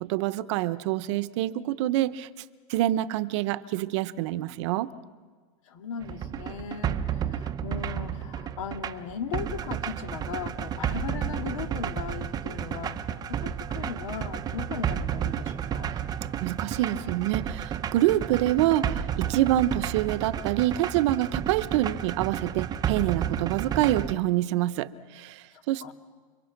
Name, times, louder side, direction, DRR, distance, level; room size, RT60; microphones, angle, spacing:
voice 1, 0.0-2.3 2.7-4.9 16.4-25.9, right 14 dB, 60° right, 14 dB, 0.9 m, -26 dB
voice 2, 5.7-16.0 18.3-18.4 18.7-18.8 25.5-25.9, left 7 dB, 70° left, 6 dB, 2.3 m, -38 dB
sound 1, 6.0-24.1, right 9 dB, 20° right, 0.8 m, -32 dB
29.0 x 24.0 x 6.0 m, 1.5 s
supercardioid pair, 135°, 17 cm